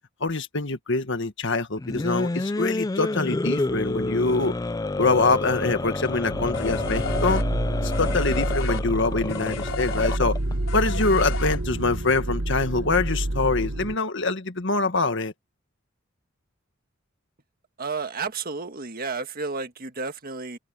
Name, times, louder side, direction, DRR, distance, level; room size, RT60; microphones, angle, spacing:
voice 1, 0.2-4.5 5.0-7.4 7.8-10.4 10.7-15.3, left 3 dB, 65° left, 1.7 m, -24 dB
sound 1, 1.8-10.5, left 2 dB, 20° left, 0.4 m, -29 dB
sound 2, 6.3-14.0, right 1 dB, 80° right, 1.5 m, -28 dB
sound 3, 6.5-12.0, left 5 dB, 80° left, 4.0 m, -35 dB
voice 2, 17.8-20.6, right 4 dB, 45° right, 1.7 m, -32 dB
head